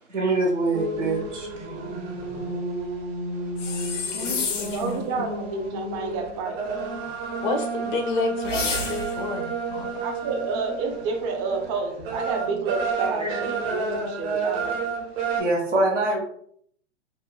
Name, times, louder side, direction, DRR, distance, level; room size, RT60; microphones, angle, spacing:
voice 1, 0.1-1.8 13.2-13.4 15.4-16.2, right 2 dB, 85° right, -1 dB, 1.0 m, -24 dB
sound 1, 0.7-15.4, right 3 dB, 55° right, 0.8 m, -31 dB
voice 2, 3.3-3.8 4.7-7.2 10.0-15.3, right 4 dB, 30° right, 3 dB, 0.4 m, -30 dB
sound 2, 3.6-4.9 8.4-9.3, left 4 dB, 80° left, 0.7 m, -30 dB
voice 3, 4.1-5.0 5.3-5.5 7.4-9.9, left 3 dB, 45° left, 5 dB, 0.5 m, -30 dB
3.0 x 2.0 x 2.3 m, 0.64 s
hypercardioid pair, 110°, 36 cm